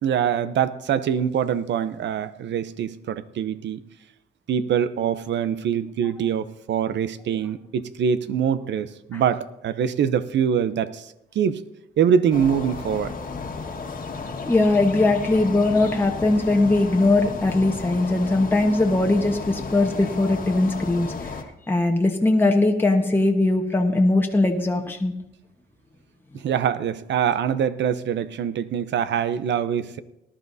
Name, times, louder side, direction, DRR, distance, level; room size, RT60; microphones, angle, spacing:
voice 1, 0.0-3.8 4.5-11.1 11.3-11.6 12.0-13.1 26.3-30.0, right 8 dB, 65° right, 14 dB, 0.7 m, -24 dB
sound 1, 12.3-21.4, left 4 dB, 45° left, 1.6 m, -33 dB
voice 2, 14.5-21.3 21.7-25.1, left 2 dB, 10° left, 2 dB, 1.2 m, -20 dB
19.0 x 11.5 x 2.7 m, 0.88 s
cardioid pair, 90°, 20 cm